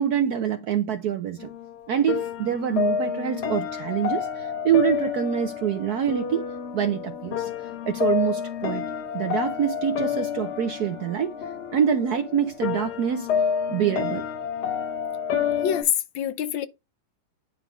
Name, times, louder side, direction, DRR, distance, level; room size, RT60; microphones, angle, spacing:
voice 1, 0.0-1.5 1.9-6.4 6.7-8.8 9.1-13.3 13.7-14.2, right 9 dB, 70° right, 0.9 m, -25 dB
sound 1, 1.4-15.8, left 7 dB, 55° left, 1.5 m, -29 dB
voice 2, 15.6-16.7, left 10 dB, 75° left, 1.3 m, -25 dB
10.0 x 3.4 x 4.8 m
omnidirectional pair, 2.3 m